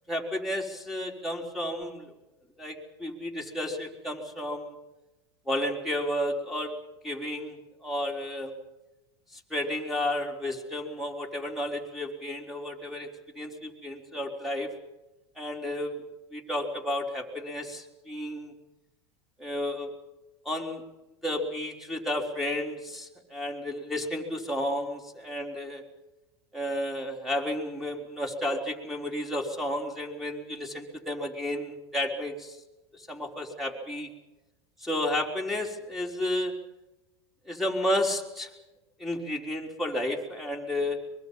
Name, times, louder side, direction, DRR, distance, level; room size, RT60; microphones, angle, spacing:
voice 1, 0.1-2.1 2.6-4.7 5.5-6.7 7.0-8.5 9.3-14.7 15.4-16.0 16.3-18.5 19.4-19.9 20.5-20.8 21.2-25.8 26.5-32.6 32.9-34.1 34.8-36.5 37.5-38.5 39.0-41.0, left 1 dB, ahead, 3 dB, 4.0 m, -32 dB
24.0 x 22.5 x 5.5 m, 1.0 s
supercardioid pair, 115°, 14 cm